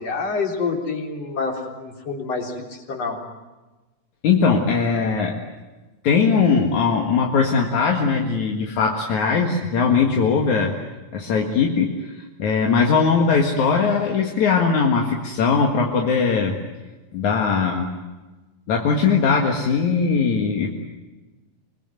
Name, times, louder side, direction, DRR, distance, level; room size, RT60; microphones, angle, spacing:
voice 1, 0.0-3.2, left 4 dB, 55° left, 3 dB, 4.8 m, -27 dB
voice 2, 4.2-5.4 6.0-10.7 11.1-16.6 17.1-18.0 18.7-20.8, left 5 dB, 75° left, 2 dB, 3.3 m, -20 dB
27.5 x 21.0 x 9.3 m, 1.2 s
omnidirectional pair, 3.4 m